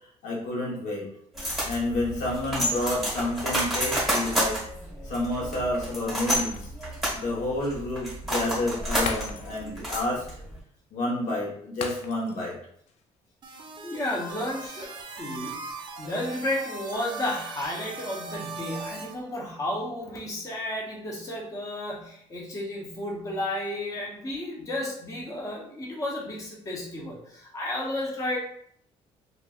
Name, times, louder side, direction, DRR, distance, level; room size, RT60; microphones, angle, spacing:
voice 1, 0.2-1.1 1.6-4.6 5.0-6.7 7.1-10.2 10.9-12.6, left 1 dB, 85° left, -3 dB, 1.0 m, -29 dB
sound 1, 1.4-10.6, equal, ahead, 1.3 m, -30 dB
Shatter, 6.3-7.0 7.4-7.5 9.0-9.8 10.1-10.3 11.8-12.5 12.9-13.0, left 5 dB, 65° left, 0.4 m, -37 dB
sound 2, 13.4-19.1, right 3 dB, 40° right, 0.5 m, -39 dB
voice 2, 13.8-28.4, left 1 dB, 25° left, -3 dB, 0.8 m, -32 dB
3.1 x 2.4 x 2.3 m, 0.66 s
cardioid pair, 140°, 12 cm